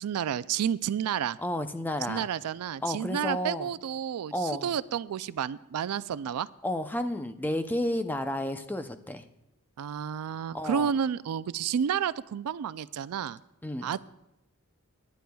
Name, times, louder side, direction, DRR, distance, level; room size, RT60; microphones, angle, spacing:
voice 1, 0.0-1.4 2.1-6.5 9.8-13.4 13.8-14.0, right 8 dB, 85° right, 17 dB, 0.4 m, -30 dB
voice 2, 1.4-2.3 2.8-3.7 4.3-4.7 6.6-9.3 10.5-10.9 13.6-14.0, left 1 dB, 10° left, 8 dB, 0.5 m, -31 dB
27.5 x 10.0 x 2.3 m, 0.87 s
head